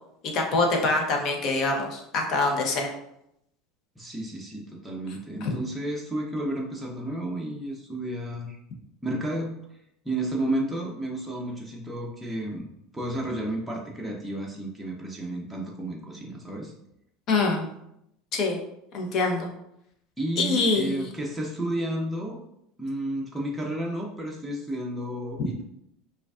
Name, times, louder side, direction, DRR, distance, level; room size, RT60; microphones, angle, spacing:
voice 1, 0.2-2.9 5.4-5.6 17.3-17.7 18.3-18.6 18.9-19.5 20.4-21.0, left 3 dB, 50° left, 2 dB, 0.8 m, -25 dB
voice 2, 4.0-8.6 9.0-9.6 10.0-12.7 12.9-16.7 20.2-22.4 22.8-25.6, right 1 dB, 5° right, -3 dB, 0.6 m, -32 dB
4.9 x 2.4 x 2.4 m, 0.78 s
supercardioid pair, 120°, 0 cm